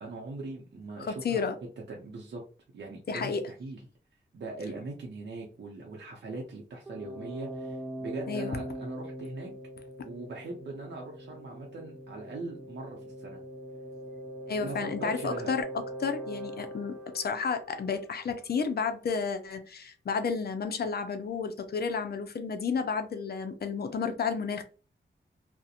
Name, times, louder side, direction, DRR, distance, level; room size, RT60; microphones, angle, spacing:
voice 1, 0.0-1.4 1.9-2.4 2.7-3.8 4.3-9.5 10.0-13.4 14.6-15.5, right 3 dB, 65° right, 0.6 m, -40 dB
voice 2, 1.0-1.6 3.1-3.5 8.3-8.6 14.5-24.6, left 5 dB, 55° left, 0.5 m, -32 dB
sound 1, 6.9-18.5, equal, 10° right, 0.4 m, -42 dB
2.4 x 2.1 x 2.7 m
wide cardioid pair, 95°, 19 cm